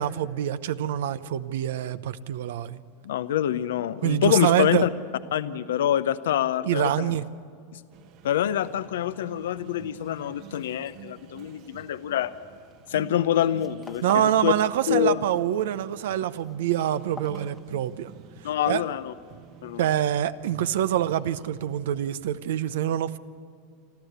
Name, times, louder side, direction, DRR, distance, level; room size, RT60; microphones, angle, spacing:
voice 1, 0.0-2.8 4.0-4.9 6.6-7.3 14.0-18.1 18.7-18.8 19.8-23.2, right 11 dB, 75° right, 14 dB, 0.8 m, -25 dB
voice 2, 3.0-4.9 5.3-7.1 7.7-7.8 8.2-12.3 12.9-14.5 14.9-15.2 18.4-19.1 19.6-19.8, left 11 dB, 80° left, 13 dB, 0.6 m, -26 dB
sound 1, 7.9-22.6, right 9 dB, 55° right, 1.4 m, -49 dB
sound 2, 12.7-13.0 13.3-14.5 14.8-15.4 15.7-18.2, left 3 dB, 15° left, 1.0 m, -46 dB
26.0 x 14.0 x 8.1 m, 2.3 s
hypercardioid pair, 110°, 0 cm